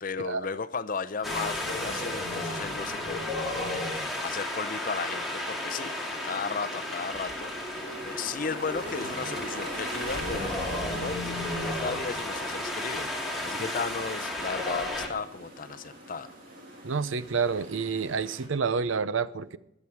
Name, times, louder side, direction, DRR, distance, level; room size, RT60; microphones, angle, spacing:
voice 1, 0.0-13.1 13.4-16.3, left 5 dB, 45° left, 0.6 m, -35 dB
Wind, 1.2-15.1, left 1 dB, ahead, 2.2 m, -33 dB
sound 1, 5.7-18.5, right 1 dB, 45° right, 3.0 m, -44 dB
voice 2, 16.8-19.6, right 5 dB, 80° right, 0.6 m, -29 dB
21.0 x 7.2 x 4.7 m
head